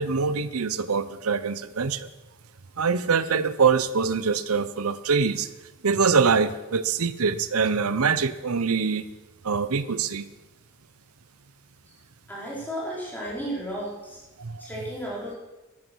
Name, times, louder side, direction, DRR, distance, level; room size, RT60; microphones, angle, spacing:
voice 1, 0.0-2.1 2.8-5.5 5.8-9.1 9.4-10.3 14.4-14.7, right 5 dB, 80° right, 14 dB, 0.8 m, -24 dB
voice 2, 12.3-14.2 14.6-15.4, right 1 dB, 10° left, -5 dB, 4.4 m, -33 dB
13.5 x 11.5 x 6.3 m, 1.1 s
head